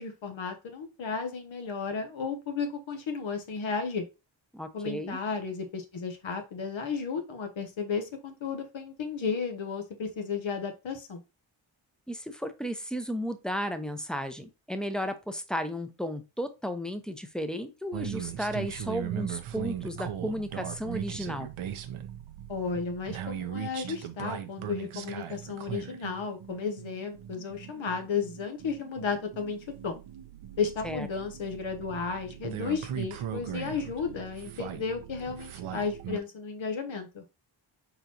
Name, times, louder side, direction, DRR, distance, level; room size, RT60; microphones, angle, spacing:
voice 1, 0.0-4.1 4.7-11.2 22.5-30.0 30.6-37.2, left 5 dB, 70° left, 6 dB, 1.0 m, -33 dB
voice 2, 4.5-5.2 12.1-21.5 30.8-31.1, equal, ahead, 9 dB, 0.6 m, -34 dB
sound 1, 17.9-36.2, right 10 dB, 80° right, 0.7 m, -39 dB
4.5 x 3.9 x 2.8 m, 0.27 s
cardioid pair, 60°, 49 cm